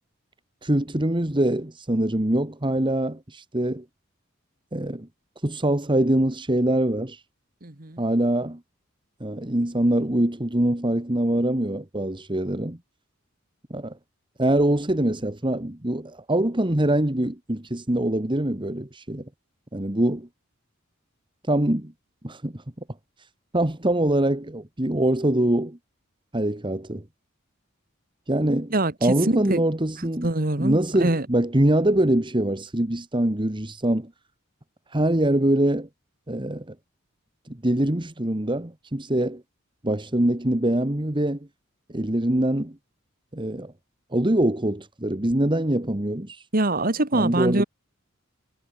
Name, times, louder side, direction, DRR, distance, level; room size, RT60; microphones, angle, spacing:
voice 1, 0.6-3.8 4.7-5.1 5.4-7.2 8.0-8.6 9.2-12.8 13.7-13.9 14.4-19.3 19.7-20.3 21.5-21.9 22.2-22.6 23.5-25.8 26.3-27.0 28.3-28.7 29.0-30.3 30.6-34.1 34.9-35.9 36.3-36.7 37.5-39.4 39.8-41.4 41.9-42.8 43.3-43.7 44.1-46.4 47.1-47.6, right 1 dB, 25° right, 1.7 m, -23 dB
voice 2, 7.6-8.0 28.7-29.6 30.2-31.3 46.5-47.6, right 2 dB, 45° right, 2.2 m, -24 dB
head